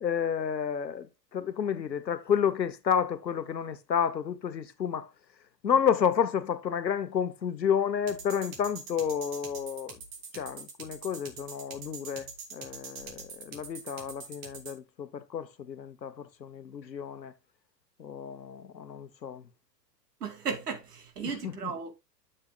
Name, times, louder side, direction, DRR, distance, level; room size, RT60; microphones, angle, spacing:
voice 1, 0.0-5.1 5.6-10.0 10.3-17.3 18.0-19.4 21.4-21.7, left 8 dB, 80° left, 1.0 m, -30 dB
sound 1, 8.1-14.8, right 5 dB, 40° right, 2.8 m, -44 dB
voice 2, 20.2-21.9, right 6 dB, 65° right, 2.4 m, -35 dB
11.5 x 6.6 x 2.3 m
figure-of-eight pair, 105°, 50 cm